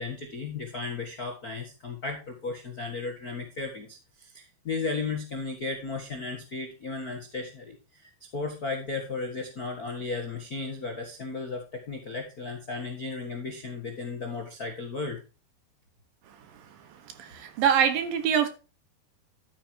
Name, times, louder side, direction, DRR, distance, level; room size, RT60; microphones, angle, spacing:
voice 1, 0.0-15.2, left 4 dB, 80° left, 0.8 m, -35 dB
voice 2, 17.2-18.5, right 8 dB, 70° right, 2.9 m, -24 dB
11.5 x 8.9 x 2.9 m
omnidirectional pair, 4.5 m